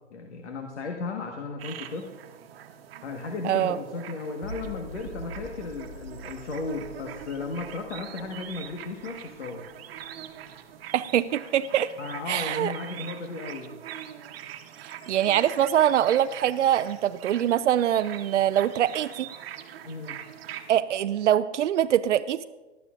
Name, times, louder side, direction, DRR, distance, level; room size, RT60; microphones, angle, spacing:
voice 1, 0.1-2.1 3.0-9.6 12.0-13.7 19.8-20.2, left 3 dB, 75° left, 3 dB, 1.6 m, -35 dB
sound 1, 1.6-20.8, right 10 dB, 55° right, 1.1 m, -43 dB
voice 2, 3.4-3.8 10.9-11.9 12.3-12.7 14.8-19.3 20.7-22.4, right 11 dB, 80° right, 13 dB, 0.5 m, -24 dB
sound 2, 4.4-10.5, equal, 55° left, 2.3 m, -45 dB
19.0 x 12.0 x 2.5 m, 1.2 s
hypercardioid pair, 130°, 35 cm